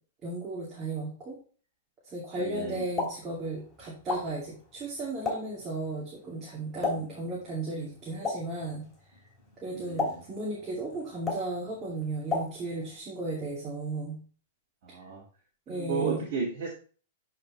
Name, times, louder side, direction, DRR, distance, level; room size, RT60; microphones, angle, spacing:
voice 1, 0.2-1.4 2.0-8.9 9.6-14.2 15.7-16.2, right 2 dB, 20° right, -6 dB, 2.6 m, -35 dB
voice 2, 2.4-2.9 6.9-7.3 9.7-10.2 14.8-15.2 15.7-16.7, right 5 dB, 50° right, -4 dB, 2.3 m, -34 dB
Explosion, 2.7-13.0, left 3 dB, 10° left, 3.0 m, -38 dB
10.5 x 4.3 x 3.2 m, 0.40 s
hypercardioid pair, 150°, 0 cm